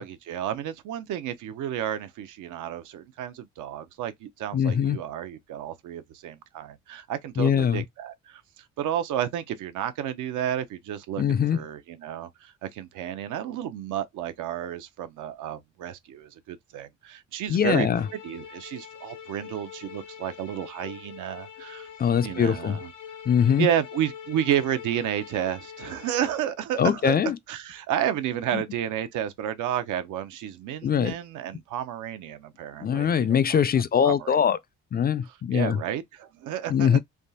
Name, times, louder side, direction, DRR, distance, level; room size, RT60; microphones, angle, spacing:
voice 1, 0.0-8.4 8.8-17.9 18.2-21.9 22.2-22.9 23.6-27.2 27.5-33.6 34.0-34.4 35.5-37.0, right 10 dB, 85° right, 0.7 m, -31 dB
voice 2, 4.5-5.0 7.4-7.8 11.2-11.6 17.5-18.1 22.0-22.8 23.3-23.7 26.8-27.4 28.5-28.6 30.8-31.1 32.8-34.6 34.9-35.8 36.7-37.0, left 8 dB, 30° left, 0.4 m, -22 dB
sound 1, 17.7-26.5, left 8 dB, 90° left, 1.2 m, -44 dB
3.5 x 2.3 x 2.7 m
cardioid pair, 90°, 30 cm